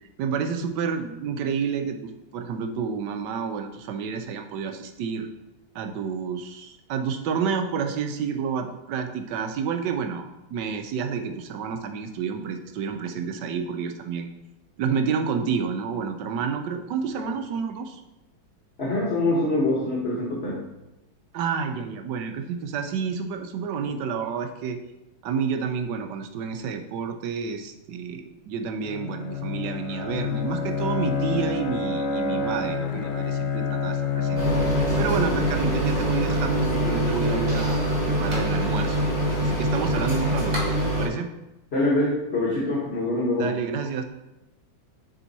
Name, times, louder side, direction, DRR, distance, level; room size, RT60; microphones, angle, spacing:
voice 1, 0.2-5.3 5.7-14.3 14.8-18.0 21.3-24.8 25.2-34.4 35.0-39.0 39.4-41.3 43.4-44.0, right 6 dB, 75° right, 6 dB, 1.1 m, -29 dB
voice 2, 18.8-20.6 41.7-43.5, left 2 dB, 40° left, -6 dB, 1.2 m, -24 dB
Bowed string instrument, 28.8-36.6, left 4 dB, 80° left, 0.7 m, -28 dB
sound 1, 34.4-41.1, right 1 dB, 40° right, 1.9 m, -24 dB
7.1 x 3.5 x 4.0 m, 0.94 s
omnidirectional pair, 2.1 m